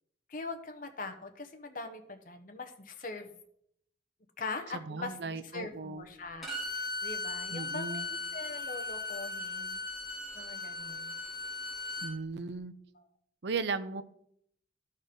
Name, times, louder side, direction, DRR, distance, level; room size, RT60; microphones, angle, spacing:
voice 1, 0.3-3.3 4.4-9.8 10.3-11.1 12.9-13.0, left 3 dB, 50° left, 5 dB, 1.0 m, -42 dB
voice 2, 4.7-6.0 7.5-8.1 12.0-12.7 13.4-14.0, right 4 dB, 75° right, 12 dB, 0.6 m, -36 dB
Bowed string instrument, 6.4-12.1, left 2 dB, ahead, 2.2 m, -38 dB
12.5 x 4.2 x 5.1 m, 0.71 s
head